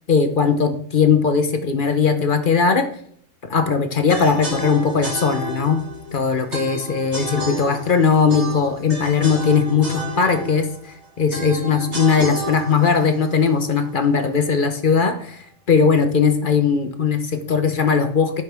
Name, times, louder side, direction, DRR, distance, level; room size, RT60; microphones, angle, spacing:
voice 1, 0.1-2.9 3.4-5.8 6.1-10.7 11.2-18.4, left 5 dB, 40° left, 8 dB, 0.9 m, -19 dB
sound 1, 4.1-14.2, right 1 dB, 40° right, 4.1 m, -31 dB
10.5 x 9.0 x 3.6 m, 0.63 s
omnidirectional pair, 1.7 m